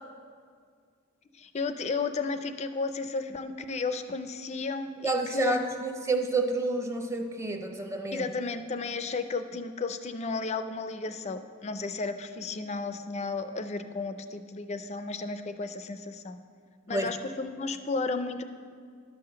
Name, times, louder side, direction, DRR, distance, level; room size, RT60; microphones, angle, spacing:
voice 1, 1.4-5.6 8.1-16.4 16.9-18.4, left 4 dB, 30° left, 10 dB, 0.4 m, -33 dB
voice 2, 5.0-8.3 16.9-17.1, right 2 dB, 15° right, 4 dB, 0.7 m, -29 dB
11.5 x 5.7 x 6.7 m, 2.1 s
head